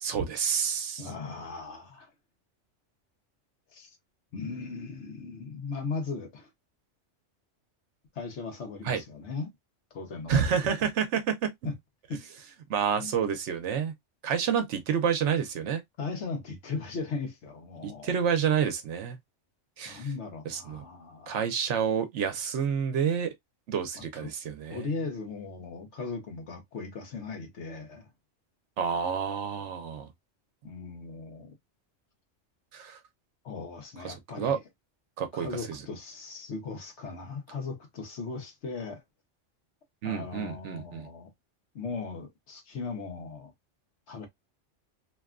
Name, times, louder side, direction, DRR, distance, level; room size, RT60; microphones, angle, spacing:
voice 1, 0.0-1.1 8.8-9.0 10.3-11.5 12.7-13.9 14.2-15.8 17.8-19.2 19.8-20.1 20.5-20.8 21.3-23.3 23.7-24.9 28.8-30.1 32.7-33.0 34.0-34.6 35.2-35.8 40.0-41.1, right 7 dB, 75° right, 0.9 m, -29 dB
voice 2, 1.0-2.1 3.7-3.9 4.3-6.5 8.1-9.5 9.9-10.8 11.6-11.7 12.1-12.2 13.0-13.1 16.0-18.3 19.9-21.4 24.0-24.3 24.7-28.1 30.6-31.6 33.4-34.6 35.3-39.0 40.0-41.3 41.7-43.5 44.1-44.3, left 4 dB, 70° left, 1.1 m, -38 dB
2.8 x 2.2 x 2.3 m
omnidirectional pair, 1.3 m